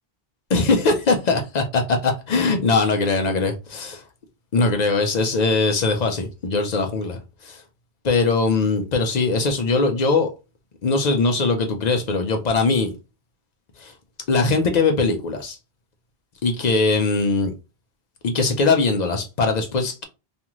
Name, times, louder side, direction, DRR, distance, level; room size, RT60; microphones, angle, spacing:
voice 1, 0.5-4.0 4.5-7.6 8.0-10.3 10.8-12.9 13.8-13.9 14.3-15.6 16.4-17.5 18.2-20.0, left 3 dB, 50° left, 0.6 m, -21 dB
2.5 x 2.4 x 2.9 m
omnidirectional pair, 1.0 m